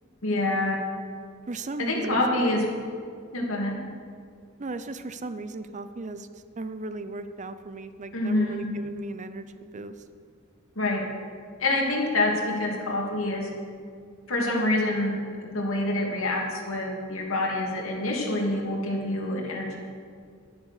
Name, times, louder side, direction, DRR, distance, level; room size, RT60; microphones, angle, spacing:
voice 1, 0.2-0.8 1.8-2.6 3.3-3.7 8.1-8.7 10.8-11.0 11.6-13.5 14.3-19.8, left 2 dB, 80° left, -1 dB, 2.7 m, -26 dB
voice 2, 1.5-2.2 4.6-6.3 6.6-9.9, right 3 dB, 35° right, 11 dB, 0.6 m, -36 dB
11.0 x 10.5 x 6.6 m, 2.2 s
head